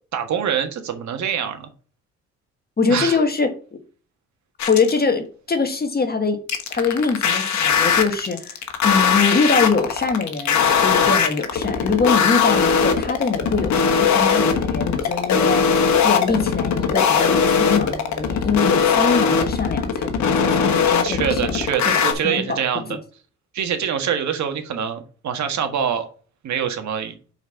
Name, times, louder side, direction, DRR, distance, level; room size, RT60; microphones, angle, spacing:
voice 1, 0.1-1.7 2.9-3.2 10.9-11.2 21.0-22.9 23.5-26.1 26.4-27.1, right 8 dB, 65° right, 1.6 m, -25 dB
voice 2, 2.8-3.8 4.7-6.4 6.7-15.6 16.0-20.1 20.4-22.6, left 4 dB, 30° left, 1.5 m, -23 dB
sound 1, 4.6-5.0 6.5-22.1, left 6 dB, 65° left, 1.4 m, -19 dB
5.6 x 4.6 x 5.7 m
cardioid pair, 90°, 30 cm